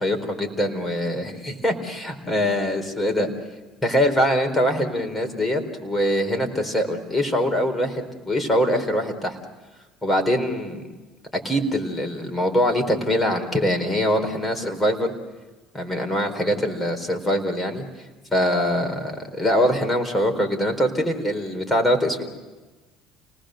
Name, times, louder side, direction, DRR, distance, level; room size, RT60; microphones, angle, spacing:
voice 1, 0.0-3.3 3.8-9.4 10.0-10.8 11.4-15.1 15.7-17.8 18.3-22.2, equal, 10° left, 5 dB, 4.2 m, -23 dB
30.0 x 19.5 x 6.6 m, 1.2 s
supercardioid pair, 110°, 0 cm